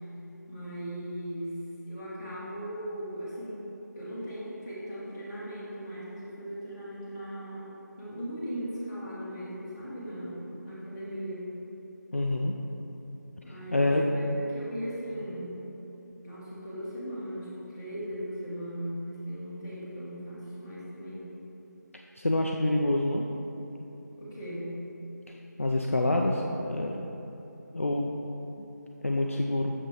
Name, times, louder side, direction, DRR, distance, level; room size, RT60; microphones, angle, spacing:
voice 1, 0.5-3.6 3.9-7.6 8.0-11.4 13.4-15.6 16.2-21.3 24.2-24.7, equal, 10° left, -11 dB, 1.1 m, -38 dB
voice 2, 12.1-12.5 13.7-14.0 22.2-23.3 25.3-27.1 27.7-28.1 29.0-29.7, left 1 dB, 45° left, 0 dB, 0.4 m, -27 dB
6.7 x 4.5 x 4.4 m, 3.0 s
figure-of-eight pair, 170°, 10 cm